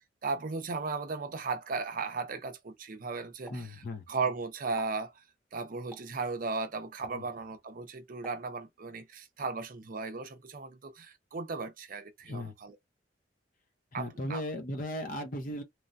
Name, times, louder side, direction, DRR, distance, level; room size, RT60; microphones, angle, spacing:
voice 1, 0.2-5.2 5.5-12.8 13.9-14.4, right 4 dB, 50° right, 0.6 m, -36 dB
voice 2, 3.5-4.0 7.1-7.2 12.2-12.5 13.9-15.6, left 1 dB, 50° left, 0.8 m, -36 dB
Explosion, 3.5-4.3 4.6-5.1 5.9-6.3 7.0-7.4 8.2-8.9 9.4-9.7, left 1 dB, 5° left, 0.8 m, -53 dB
3.1 x 2.2 x 2.6 m
head